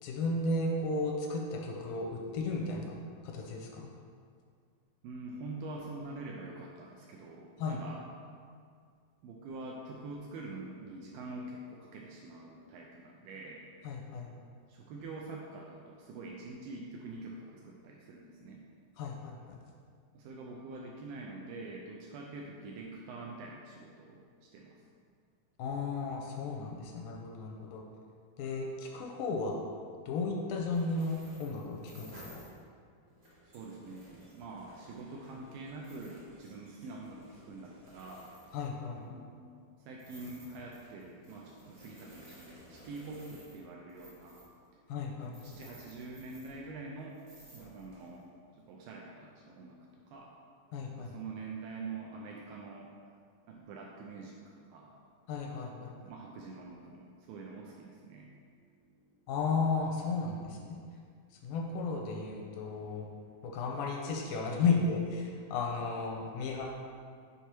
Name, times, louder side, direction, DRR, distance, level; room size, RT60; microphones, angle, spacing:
voice 1, 0.0-3.0 3.2-3.9 7.6-7.8 13.8-14.3 19.0-19.6 25.6-27.8 28.4-29.6 30.1-32.4 38.5-39.0 44.9-45.3 50.7-51.1 55.3-55.9 59.3-60.8 61.4-63.1 63.4-66.7, left 3 dB, 80° left, 0 dB, 2.2 m, -34 dB
voice 2, 5.0-8.0 9.2-13.6 14.7-18.6 20.1-24.8 33.4-38.3 39.0-44.4 45.2-47.2 47.5-48.3 48.6-49.8 50.1-50.3 51.0-52.9 53.5-54.9 55.5-59.3, right 3 dB, 80° right, -2 dB, 2.2 m, -45 dB
sound 1, 30.7-32.6 33.0-39.1 40.0-46.9 47.1-48.2, right 1 dB, 35° right, 1.2 m, -56 dB
6.7 x 4.7 x 4.4 m, 2.1 s
omnidirectional pair, 4.4 m